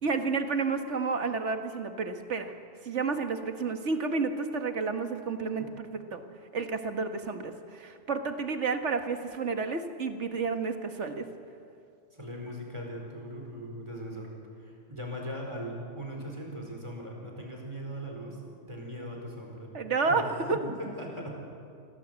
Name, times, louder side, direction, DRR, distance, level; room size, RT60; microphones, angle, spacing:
voice 1, 0.0-2.5 2.8-6.2 6.5-11.3 19.7-20.6, right 4 dB, 75° right, 6 dB, 1.9 m, -31 dB
voice 2, 12.1-14.3 14.6-18.4 18.7-19.7 20.0-20.2 20.5-21.3, equal, 25° right, 0 dB, 4.7 m, -39 dB
26.5 x 17.5 x 8.2 m, 2.4 s
omnidirectional pair, 1.2 m